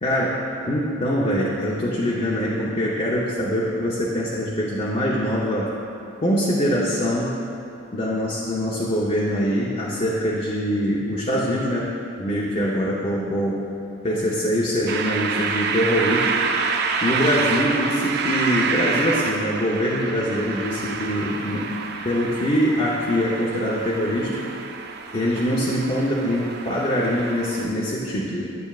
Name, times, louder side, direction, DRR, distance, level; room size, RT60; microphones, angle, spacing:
voice 1, 0.0-5.8 6.2-7.4 7.9-11.9 12.2-13.7 14.0-16.3 17.0-21.7 22.0-24.5 25.1-28.5, equal, 35° left, -6 dB, 0.7 m, -23 dB
sound 1, 14.9-27.6, right 5 dB, 55° right, 0.4 m, -28 dB
9.2 x 8.4 x 2.4 m, 2.7 s
head